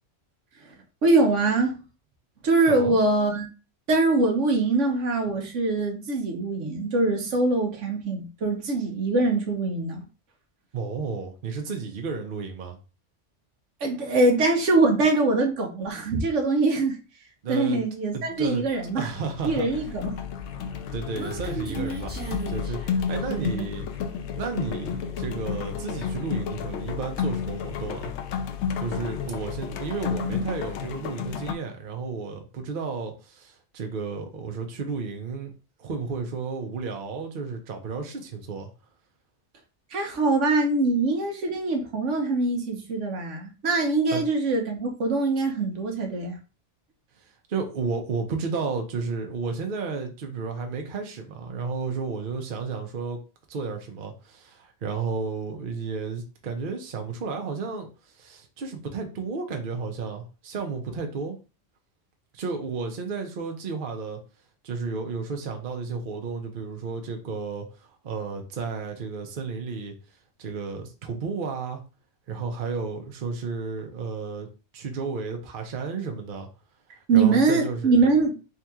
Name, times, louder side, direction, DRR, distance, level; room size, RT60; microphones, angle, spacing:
voice 1, 1.0-1.8 2.4-3.5 3.9-10.0 13.8-17.0 17.5-19.1 19.4-20.2 23.3-23.7 30.2-30.4 39.9-46.4 77.1-78.4, right 3 dB, 85° right, 1.3 m, -23 dB
voice 2, 2.7-3.0 10.7-12.8 17.4-17.8 18.1-18.6 19.0-19.7 20.9-22.2 22.5-23.9 24.4-28.1 28.8-35.5 35.8-38.7 44.1-44.2 47.5-53.2 53.5-57.9 58.1-61.4 62.3-64.2 64.6-69.9 70.4-71.8 72.3-74.5 74.7-76.5 77.1-77.9, right 4 dB, 50° right, 0.9 m, -32 dB
sound 1, 18.3-18.6 18.9-31.5, left 7 dB, 75° left, 0.8 m, -32 dB
Human voice, 20.6-23.6, right 1 dB, 10° right, 0.9 m, -36 dB
3.7 x 2.9 x 3.5 m
omnidirectional pair, 1.2 m